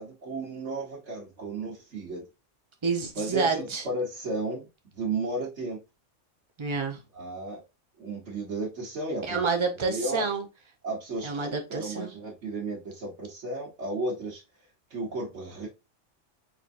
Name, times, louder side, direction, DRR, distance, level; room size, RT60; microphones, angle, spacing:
voice 1, 0.0-2.2 3.2-4.7 4.9-5.8 7.1-7.6 8.0-9.4 9.9-10.3 10.8-14.4 14.9-15.7, right 2 dB, 65° right, 1.6 m, -33 dB
voice 2, 2.8-3.8 6.6-7.0 9.2-10.5 11.2-12.1, right 4 dB, 25° right, 0.8 m, -28 dB
4.5 x 3.9 x 2.6 m
omnidirectional pair, 1.3 m